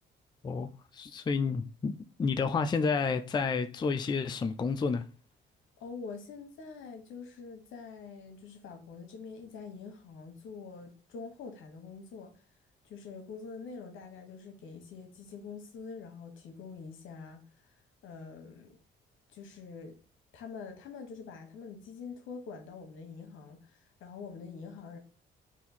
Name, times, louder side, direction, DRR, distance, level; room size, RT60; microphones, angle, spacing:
voice 1, 0.4-1.9 2.2-5.0, left 5 dB, 20° left, 0.4 m, -30 dB
voice 2, 5.8-12.3 12.8-17.4 18.0-18.8 19.3-20.0 20.3-25.0, left 5 dB, 80° left, 1.2 m, -45 dB
4.2 x 2.7 x 4.1 m
cardioid pair, 90°, 20 cm